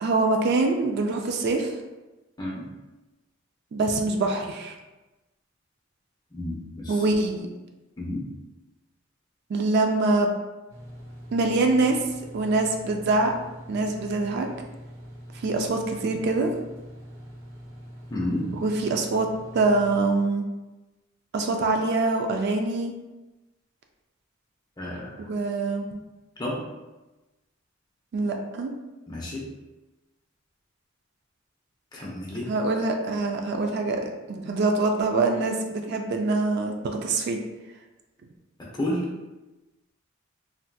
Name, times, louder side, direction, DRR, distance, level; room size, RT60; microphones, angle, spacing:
voice 1, 0.0-1.8 3.7-4.8 6.9-7.5 9.5-10.4 11.3-12.0 12.3-13.3 13.7-14.5 15.3-16.5 18.6-19.3 19.5-20.4 21.3-22.9 25.2-26.0 28.1-28.7 32.5-37.4, right 3 dB, 55° right, 3 dB, 0.3 m, -24 dB
voice 2, 6.3-7.0 8.0-8.2 18.1-18.5 24.8-25.3 26.4-26.7 29.1-29.4 31.9-32.5 38.6-39.1, left 1 dB, 20° left, -4 dB, 0.6 m, -31 dB
sound 1, 10.7-20.1, equal, 85° right, 0.9 m, -44 dB
3.2 x 2.7 x 2.2 m, 1.1 s
head